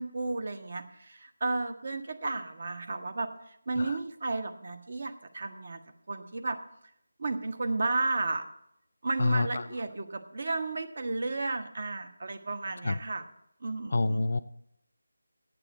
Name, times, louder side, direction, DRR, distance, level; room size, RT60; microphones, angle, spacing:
voice 1, 0.0-5.8 6.1-6.6 7.2-8.4 9.0-13.2 13.6-14.2, right 3 dB, 50° right, 7 dB, 1.2 m, -33 dB
voice 2, 9.2-9.7 12.8-13.0 13.9-14.4, left 3 dB, 50° left, 12 dB, 0.5 m, -27 dB
8.1 x 7.7 x 7.7 m, 0.74 s
figure-of-eight pair, 165°, 0 cm